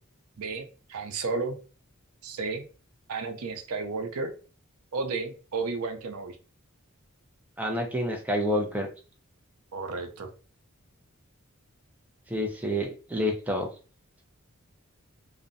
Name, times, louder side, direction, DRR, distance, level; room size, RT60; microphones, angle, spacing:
voice 1, 0.4-1.6 2.2-2.6 3.1-4.3 4.9-6.4 9.7-10.3, right 4 dB, 85° right, 5 dB, 0.5 m, -32 dB
voice 2, 7.6-8.9 12.3-13.7, equal, 5° right, 1 dB, 0.3 m, -28 dB
2.5 x 2.0 x 2.5 m, 0.37 s
head